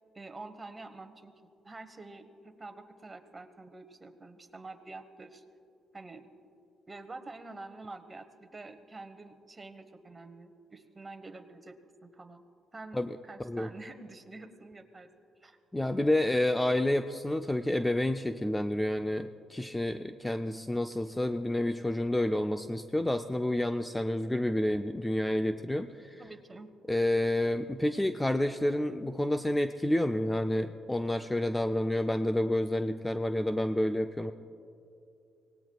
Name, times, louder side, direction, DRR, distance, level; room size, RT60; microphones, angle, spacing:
voice 1, 0.1-5.4 5.9-6.2 6.9-11.7 12.0-12.4 12.7-13.0 13.2-15.1 15.4-15.6 26.2-26.7, right 3 dB, 25° right, 8 dB, 1.2 m, -47 dB
voice 2, 15.7-26.2 26.9-34.3, left 1 dB, 10° left, 7 dB, 0.4 m, -29 dB
24.5 x 18.5 x 2.4 m, 2.6 s
cardioid pair, 90°, 0 cm